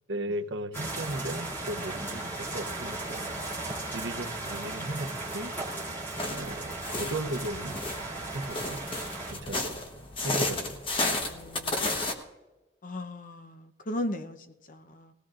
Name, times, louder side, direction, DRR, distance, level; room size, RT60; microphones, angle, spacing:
voice 1, 0.1-3.2 3.9-5.5 6.3-7.8 8.3-8.8 9.2-11.0, right 1 dB, 80° right, 0.8 m, -36 dB
sound 1, 0.7-9.3, right 2 dB, 10° left, 3.0 m, -36 dB
sound 2, 6.2-12.1, left 2 dB, 30° left, 1.1 m, -33 dB
voice 2, 11.2-12.1 12.8-15.1, left 1 dB, 45° left, 0.8 m, -38 dB
20.0 x 16.5 x 2.5 m
head